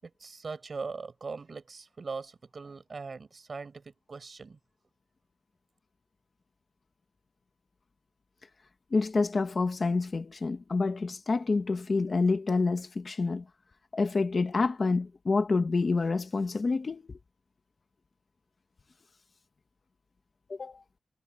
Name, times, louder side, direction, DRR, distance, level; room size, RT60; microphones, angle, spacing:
voice 1, 0.0-4.6, right 4 dB, 40° right, 6.1 m, -40 dB
voice 2, 8.9-13.4 13.9-17.2 20.5-20.8, left 3 dB, 35° left, 1.2 m, -28 dB
wide cardioid pair, 165°, 0 cm